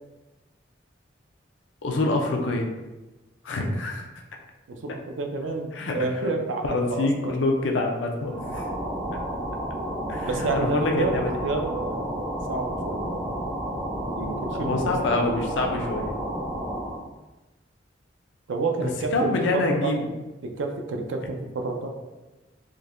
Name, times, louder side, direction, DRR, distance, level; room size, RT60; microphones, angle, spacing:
voice 1, 1.8-2.7 3.4-4.1 5.7-6.0 6.2-6.3 6.6-8.6 10.1-11.4 14.5-16.1 18.8-20.1, left 2 dB, 80° left, 2 dB, 0.5 m, -26 dB
voice 2, 4.7-7.3 10.2-13.4 14.1-15.3 18.5-20.1 20.4-21.9, right 3 dB, 85° right, 4 dB, 0.5 m, -30 dB
sound 1, 8.2-17.1, right 1 dB, 10° right, 0.4 m, -31 dB
3.7 x 2.7 x 2.5 m, 1.1 s
head